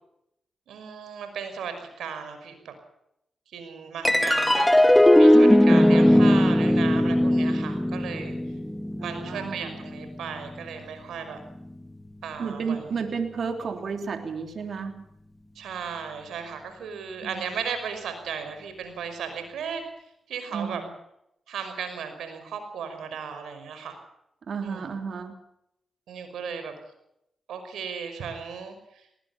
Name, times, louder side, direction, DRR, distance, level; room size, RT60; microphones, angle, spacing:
voice 1, 0.7-2.7 3.5-8.4 9.0-11.4 12.2-13.0 15.6-19.8 20.3-20.8 21.5-24.0 24.6-24.9 26.1-26.7 27.5-29.1, right 6 dB, 85° right, 8 dB, 5.5 m, -36 dB
sound 1, 4.0-10.7, left 1 dB, 10° left, 1.9 m, -19 dB
voice 2, 9.0-9.7 12.4-15.0 17.2-17.3 20.5-20.9 24.5-25.3, right 5 dB, 65° right, 6 dB, 3.3 m, -32 dB
20.0 x 19.5 x 7.1 m, 0.79 s
supercardioid pair, 50°, 0 cm